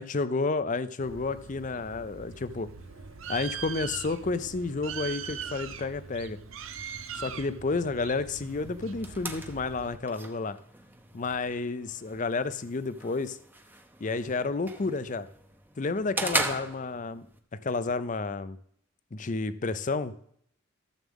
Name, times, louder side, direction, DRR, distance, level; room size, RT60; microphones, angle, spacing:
voice 1, 0.0-2.7 3.3-6.4 7.2-10.6 11.1-13.4 14.0-15.3 15.8-17.3 17.6-18.6 19.1-20.1, left 3 dB, 40° left, 14 dB, 0.5 m, -31 dB
Bird, 1.0-10.0, right 7 dB, 75° right, 0.7 m, -41 dB
sound 1, 8.4-17.4, right 2 dB, 10° right, 0.7 m, -38 dB
13.0 x 7.2 x 3.7 m, 0.66 s
head